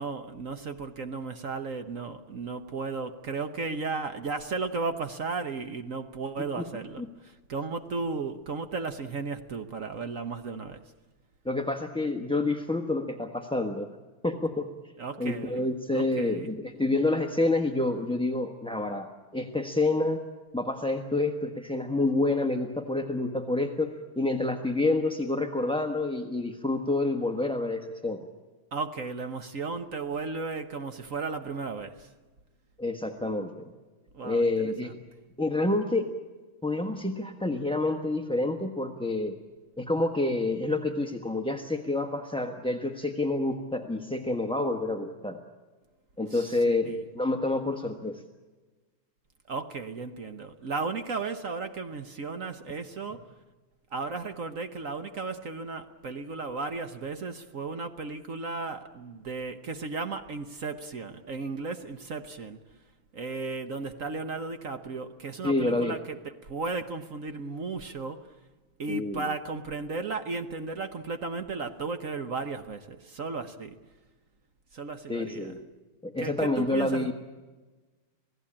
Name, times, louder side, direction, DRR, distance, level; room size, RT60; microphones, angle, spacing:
voice 1, 0.0-10.8 15.0-15.7 15.9-16.5 28.7-32.1 34.1-34.5 34.8-34.9 46.3-47.0 49.5-53.3 53.9-62.6 63.1-68.3 68.8-73.7 74.7-75.5 76.2-77.1, right 4 dB, 50° right, 9 dB, 1.1 m, -35 dB
voice 2, 11.4-13.9 14.2-14.7 15.2-20.2 20.5-28.2 32.8-33.7 34.2-34.9 35.4-36.1 36.6-39.4 39.8-45.4 46.2-48.2 65.4-66.0 68.9-69.3 75.1-75.6 76.0-77.1, left 2 dB, 5° left, 4 dB, 0.8 m, -28 dB
27.5 x 17.5 x 8.7 m, 1.3 s
omnidirectional pair, 2.4 m